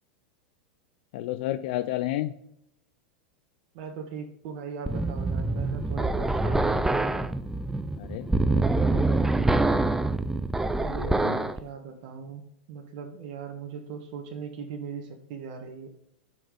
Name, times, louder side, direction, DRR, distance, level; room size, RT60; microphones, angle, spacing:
voice 1, 1.1-2.3 8.0-9.1 10.9-11.5, left 14 dB, 60° left, 12 dB, 0.4 m, -32 dB
voice 2, 3.7-7.2 10.8-12.4 12.7-15.9, right 6 dB, 55° right, 4 dB, 1.2 m, -39 dB
sound 1, 4.9-11.6, right 2 dB, 5° right, 0.4 m, -25 dB
5.5 x 5.3 x 4.9 m, 0.75 s
hypercardioid pair, 110°, 5 cm